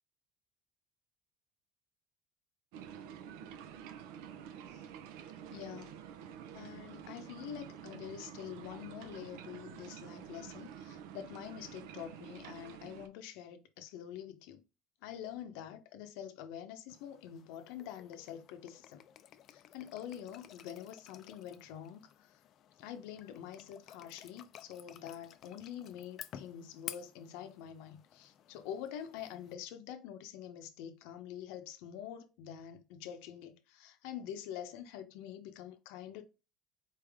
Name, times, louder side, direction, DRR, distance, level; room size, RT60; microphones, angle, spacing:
sound 1, 2.7-13.1, right 8 dB, 90° right, 0.6 m, -49 dB
voice 1, 5.5-5.9 6.5-14.6 15.0-19.0 19.5-22.3 22.8-36.2, left 10 dB, 80° left, 0.8 m, -46 dB
sound 2, 16.9-29.5, left 10 dB, 45° left, 0.4 m, -53 dB
4.4 x 3.4 x 3.5 m
cardioid pair, 145°, 0 cm